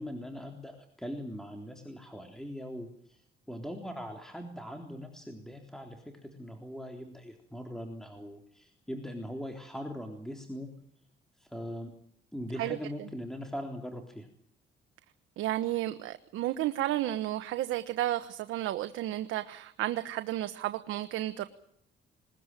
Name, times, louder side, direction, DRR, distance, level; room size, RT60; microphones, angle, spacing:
voice 1, 0.0-10.7 11.4-11.9 12.3-14.3, equal, ahead, 3 dB, 3.7 m, -41 dB
voice 2, 15.4-21.5, right 14 dB, 90° right, 9 dB, 1.2 m, -32 dB
21.0 x 20.5 x 9.1 m, 0.68 s
cardioid pair, 90°, 20 cm